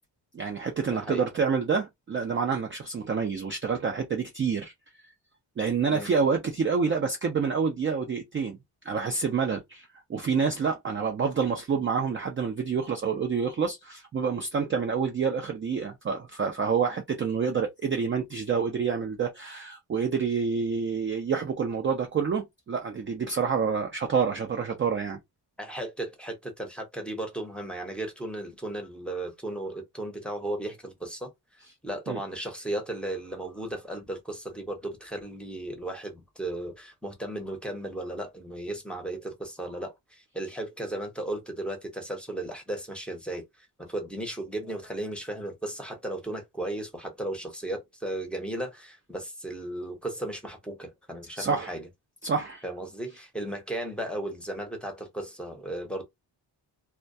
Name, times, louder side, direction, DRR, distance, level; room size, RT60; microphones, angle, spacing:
voice 1, 0.3-4.7 5.6-8.6 8.8-25.2 32.1-32.2 51.4-51.7 52.2-52.6, right 5 dB, 30° right, 0.4 m, -28 dB
voice 2, 0.9-1.2 5.9-6.1 25.6-31.3 31.8-51.9 52.6-56.0, right 1 dB, ahead, 0.7 m, -35 dB
2.2 x 2.1 x 2.6 m
cardioid pair, 125°, 44 cm